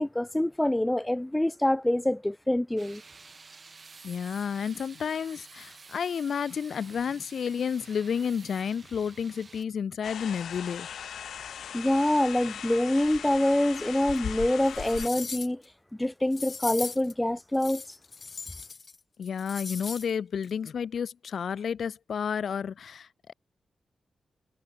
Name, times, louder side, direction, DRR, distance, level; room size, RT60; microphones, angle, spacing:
voice 1, 0.0-3.0 11.7-15.6 16.0-17.8, left 1 dB, 10° left, 1.0 m, -26 dB
sound 1, 2.8-9.6, right 4 dB, 35° right, 7.3 m, -50 dB
voice 2, 4.0-10.9 19.2-23.3, left 7 dB, 65° left, 1.1 m, -31 dB
sound 2, 10.0-15.1, left 8 dB, 85° left, 1.2 m, -39 dB
sound 3, 14.1-14.2 14.7-15.6 16.3-17.1 17.5-19.0 19.2-20.1 20.4-20.5, left 4 dB, 40° left, 0.9 m, -39 dB
wide cardioid pair, 125°, 0 cm